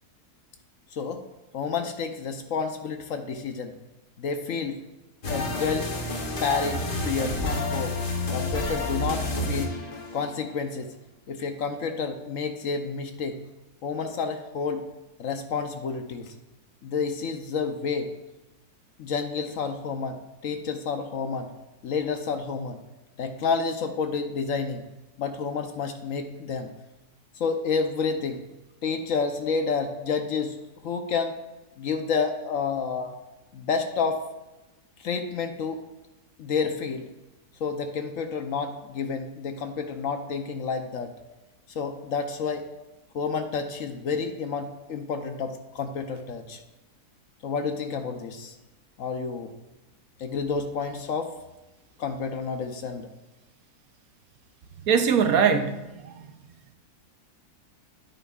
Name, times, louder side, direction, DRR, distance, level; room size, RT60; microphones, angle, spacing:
voice 1, 1.5-3.7 4.2-4.8 5.3-5.9 6.4-7.9 8.3-9.7 10.1-10.9 11.3-13.4 13.8-14.8 15.2-16.3 16.8-18.1 19.0-21.5 21.8-22.8 23.2-24.8 25.2-26.7 27.4-28.4 28.8-30.6 30.8-31.3 31.8-33.1 33.5-34.2 35.0-35.8 36.4-37.1 37.6-41.1 41.7-42.7 43.1-46.6 47.4-48.5 49.0-49.5 50.2-51.3 52.0-53.1, left 5 dB, 65° left, 6 dB, 1.1 m, -29 dB
city-loop, 5.2-10.5, left 2 dB, 40° left, 1.1 m, -30 dB
voice 2, 54.9-56.3, right 6 dB, 70° right, 8 dB, 1.2 m, -22 dB
10.0 x 9.0 x 2.4 m, 1.0 s
omnidirectional pair, 1.6 m